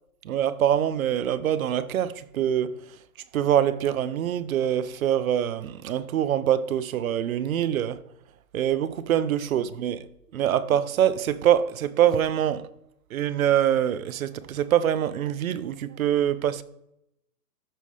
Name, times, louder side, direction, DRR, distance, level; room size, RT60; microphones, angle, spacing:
voice 1, 0.3-2.7 3.3-8.0 8.5-10.0 10.3-12.7 13.1-16.6, right 10 dB, 60° right, 0.6 m, -24 dB
13.0 x 5.1 x 3.2 m
hypercardioid pair, 170°, 48 cm